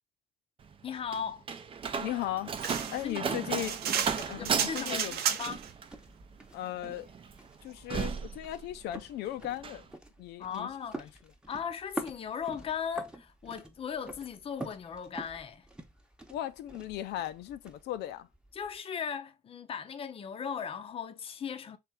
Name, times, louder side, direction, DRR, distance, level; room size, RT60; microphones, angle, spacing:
Slam, 0.6-9.1 9.4-9.8, right 6 dB, 30° right, 0.6 m, -36 dB
voice 1, 0.8-1.4 2.9-3.4 4.1-5.6 10.4-11.1 11.5-15.7 18.5-21.8, left 7 dB, 35° left, 0.6 m, -38 dB
voice 2, 1.9-2.6 2.9-3.8 4.3-5.2 6.5-7.1 7.6-9.9 10.2-10.7 10.9-11.1 16.3-18.3, left 13 dB, 80° left, 0.6 m, -37 dB
sound 1, 2.2-18.8, right 2 dB, 5° right, 0.9 m, -48 dB
sound 2, 2.6-5.7, right 9 dB, 70° right, 0.7 m, -33 dB
3.5 x 3.3 x 4.6 m
cardioid pair, 110°, 17 cm